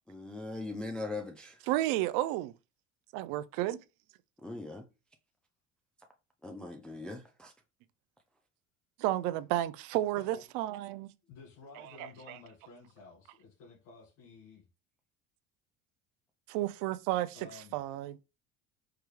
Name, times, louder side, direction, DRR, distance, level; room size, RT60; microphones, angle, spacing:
voice 1, 0.1-1.6 4.4-4.8 6.4-7.5, left 2 dB, 5° left, 0.4 m, -40 dB
voice 2, 1.7-2.5 3.1-3.8 9.0-11.1 12.0-12.4 16.5-18.2, right 15 dB, 80° right, 0.5 m, -32 dB
voice 3, 11.3-14.6 17.3-17.7, left 3 dB, 85° left, 1.7 m, -53 dB
4.7 x 2.3 x 3.1 m
cardioid pair, 125°, 31 cm